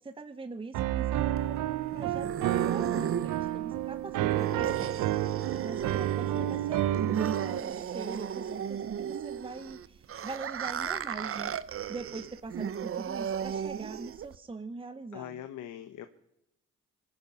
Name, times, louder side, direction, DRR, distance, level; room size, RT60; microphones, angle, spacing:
voice 1, 0.2-5.1 5.6-11.6 11.9-15.3, right 3 dB, 15° right, 11 dB, 0.8 m, -42 dB
Piano, 0.7-7.6, right 13 dB, 85° right, 0.7 m, -30 dB
sound 1, 1.4-14.4, right 8 dB, 45° right, 0.8 m, -35 dB
voice 2, 4.2-4.7 6.3-6.6 15.1-16.1, left 11 dB, 75° left, 9 dB, 1.2 m, -43 dB
24.0 x 10.5 x 5.6 m, 0.84 s
cardioid pair, 90°, 30 cm